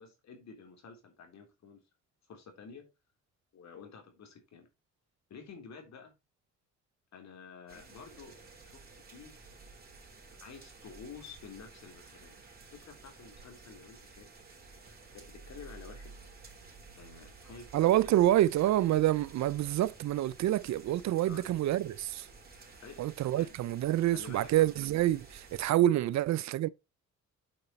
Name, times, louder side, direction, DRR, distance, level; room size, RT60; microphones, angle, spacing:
voice 1, 0.0-1.8 2.3-2.9 3.5-4.7 5.3-6.1 7.1-8.3 8.6-8.8 9.1-9.3 10.4-12.4 12.7-14.3 15.1-16.1 16.9-18.3 21.2-21.4 22.8-23.0 23.3-23.5 24.1-24.5 25.9-26.0, left 5 dB, 60° left, 3.3 m, -50 dB
sound 1, 7.7-25.7, right 3 dB, 30° right, 3.5 m, -53 dB
voice 2, 17.7-22.3 23.0-26.7, right 13 dB, 65° right, 0.5 m, -27 dB
8.9 x 5.0 x 4.4 m
cardioid pair, 90°, 30 cm